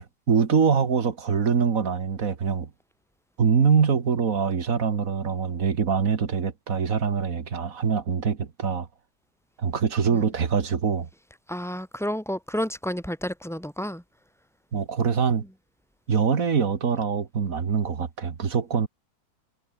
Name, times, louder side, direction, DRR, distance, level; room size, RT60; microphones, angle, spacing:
voice 1, 0.0-2.7 3.4-8.9 9.6-11.1 14.7-15.4 16.1-18.9, right 6 dB, 60° right, 2.0 m, -24 dB
voice 2, 11.5-14.0, equal, ahead, 4.2 m, -30 dB
omnidirectional pair, 1.7 m